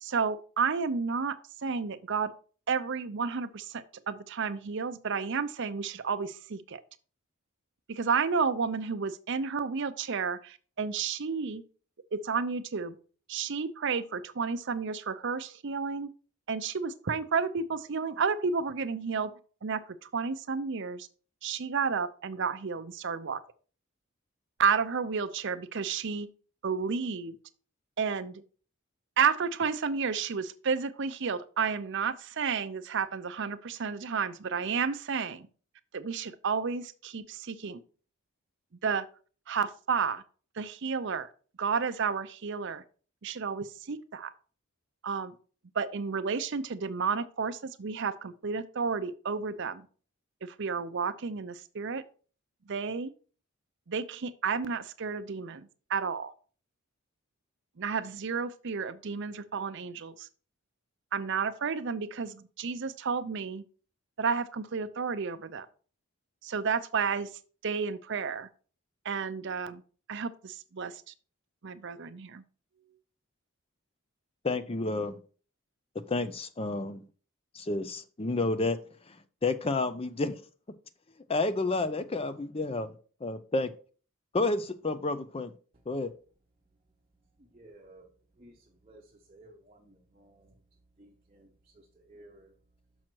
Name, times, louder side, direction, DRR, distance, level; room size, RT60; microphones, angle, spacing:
voice 1, 0.0-1.4 1.6-2.3 2.7-6.8 7.9-11.6 12.1-12.9 13.3-16.1 16.5-19.3 19.6-21.1 21.4-23.4 24.6-26.3 26.6-27.4 28.0-28.4 29.2-35.5 35.9-37.8 38.8-39.1 39.5-40.2 40.6-41.3 41.6-42.8 43.2-44.3 45.0-45.3 45.7-49.9 50.4-52.0 52.7-53.1 53.9-56.3 57.8-60.3 61.1-63.6 64.2-65.7 66.4-67.3 67.6-68.5 69.0-69.8 70.1-71.1 71.6-72.4, right 5 dB, 55° right, 0.6 m, -31 dB
voice 2, 74.4-75.2 76.1-77.0 77.5-78.8 79.4-80.4 81.3-82.9 83.2-83.7 84.3-85.5 85.9-86.1, left 3 dB, 25° left, 0.5 m, -30 dB
voice 3, 87.6-88.0 88.4-88.5 88.9-89.0 89.3-89.8 91.0-91.4 92.1-92.5, right 1 dB, 25° right, 0.8 m, -53 dB
6.3 x 6.0 x 4.5 m
head